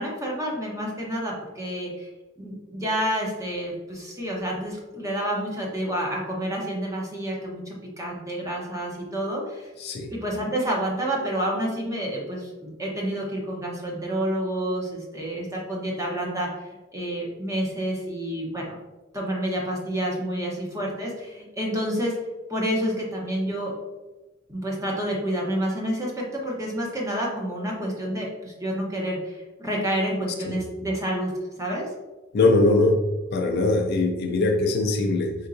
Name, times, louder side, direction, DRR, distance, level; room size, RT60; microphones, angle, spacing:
voice 1, 0.0-2.1 2.4-9.7 10.1-18.8 19.1-22.1 22.5-23.7 24.5-31.3 31.6-31.9, right 1 dB, 15° right, -2 dB, 0.8 m, -29 dB
voice 2, 9.8-10.1 30.4-30.6 32.3-33.0 33.3-35.5, left 2 dB, 50° left, 3 dB, 0.4 m, -21 dB
4.4 x 3.8 x 2.6 m, 1.2 s
head